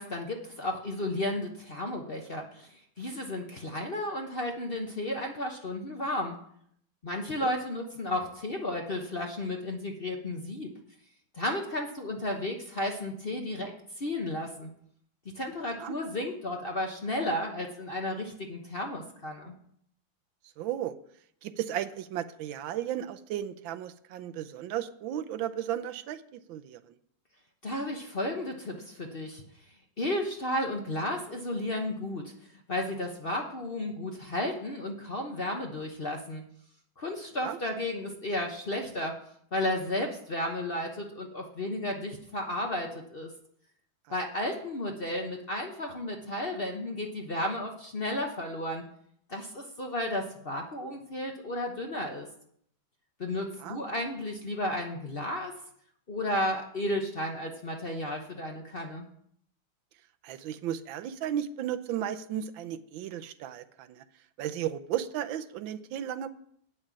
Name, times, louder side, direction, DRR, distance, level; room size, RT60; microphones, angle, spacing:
voice 1, 0.0-6.4 7.0-10.7 11.3-14.7 15.3-19.5 27.6-29.4 30.0-36.4 37.0-39.2 39.5-43.3 44.1-48.9 49.3-52.3 53.2-55.5 56.1-59.1, left 1 dB, 40° left, 2 dB, 0.9 m, -33 dB
voice 2, 20.6-21.0 21.4-26.9 37.4-37.6 44.1-44.2 53.6-53.8 60.2-64.0 64.4-66.3, right 11 dB, 80° right, 12 dB, 1.4 m, -34 dB
8.7 x 6.4 x 7.4 m, 0.66 s
omnidirectional pair, 2.2 m